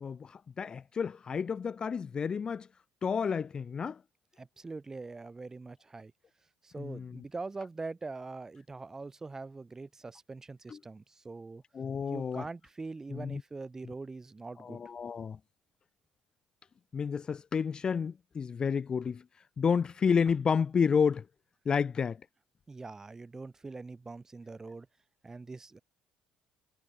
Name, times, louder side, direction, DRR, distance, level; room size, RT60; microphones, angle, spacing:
voice 1, 0.0-2.7 3.0-4.0 6.8-7.2 10.7-10.8 11.7-12.5 13.1-13.4 14.6-15.4 16.9-19.2 19.6-21.3 21.7-22.2, left 6 dB, 35° left, 0.3 m, -30 dB
voice 2, 4.4-6.1 6.6-11.6 12.1-14.8 22.7-24.9 25.2-25.8, right 3 dB, 20° right, 1.9 m, -43 dB
supercardioid pair, 85°, 2 cm